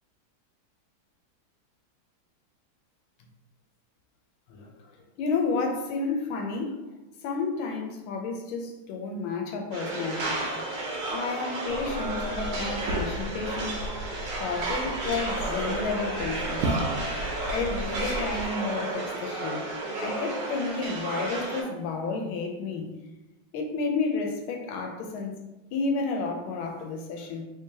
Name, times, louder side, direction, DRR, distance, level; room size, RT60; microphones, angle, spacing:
voice 1, 4.5-4.9 5.2-6.8 7.2-10.4 11.1-13.8 14.4-16.8 17.5-19.7 20.0-22.9 23.5-25.4 25.7-27.4, left 4 dB, 80° left, 3 dB, 1.4 m, -31 dB
sound 1, 9.7-21.6, right 2 dB, 60° right, 1.1 m, -32 dB
Liquid, 11.7-18.4, right 2 dB, 80° right, 1.3 m, -35 dB
3.7 x 3.3 x 2.7 m, 1.0 s
omnidirectional pair, 2.3 m